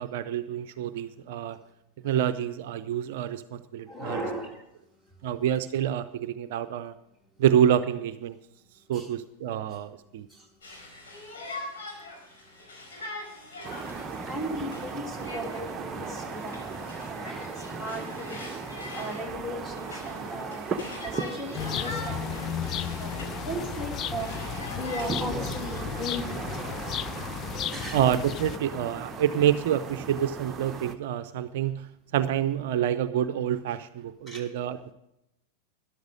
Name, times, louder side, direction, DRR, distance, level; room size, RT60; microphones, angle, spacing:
voice 1, 0.0-1.6 2.0-4.3 5.2-6.9 7.4-8.4 8.9-10.3 27.9-34.9, right 10 dB, 50° right, 11 dB, 0.5 m, -27 dB
voice 2, 3.9-4.5 8.9-9.1 9.7-9.8 10.3-10.5 14.3-16.6 16.9-18.5 18.9-20.7 21.0-22.5 22.7-26.6 27.7-28.0 34.3-34.4, equal, 10° left, 2 dB, 2.9 m, -37 dB
Conversation, 10.6-23.4 23.8-26.4, left 2 dB, 65° left, 4.6 m, -43 dB
sound 1, 13.6-30.9, right 4 dB, 20° right, 0.9 m, -37 dB
sound 2, 21.5-28.6, left 11 dB, 30° left, 0.4 m, -34 dB
13.0 x 11.5 x 5.1 m, 0.82 s
figure-of-eight pair, 90°, 0 cm